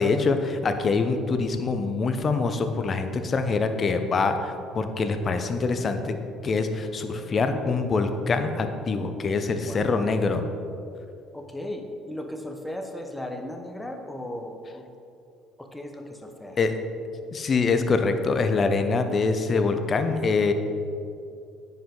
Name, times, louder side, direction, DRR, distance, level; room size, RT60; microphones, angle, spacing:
voice 1, 0.0-6.2 6.4-10.5 16.6-16.7 17.3-20.5, left 4 dB, 40° left, 8 dB, 0.8 m, -24 dB
voice 2, 9.6-10.1 11.3-14.8 15.6-16.7, left 1 dB, 10° left, 4 dB, 1.1 m, -36 dB
9.9 x 5.7 x 3.8 m, 2.5 s
hypercardioid pair, 60°, 0 cm